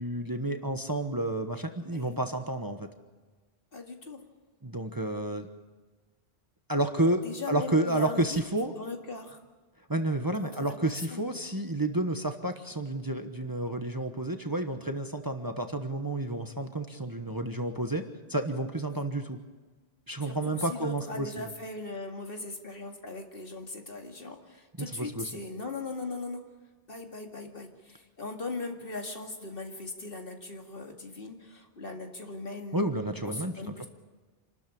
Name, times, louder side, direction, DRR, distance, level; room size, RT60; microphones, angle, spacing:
voice 1, 0.0-2.9 4.6-5.5 6.7-8.7 9.9-18.0 18.3-19.4 20.1-21.3 24.8-25.3 32.7-33.9, right 1 dB, 20° right, 6 dB, 1.2 m, -30 dB
voice 2, 3.7-4.2 7.2-8.4 8.7-9.4 10.4-10.8 11.1-11.2 18.9-19.0 20.2-26.4 26.9-32.8 33.2-33.9, left 3 dB, 60° left, 3 dB, 2.5 m, -39 dB
27.0 x 13.0 x 8.6 m, 1.3 s
omnidirectional pair, 1.1 m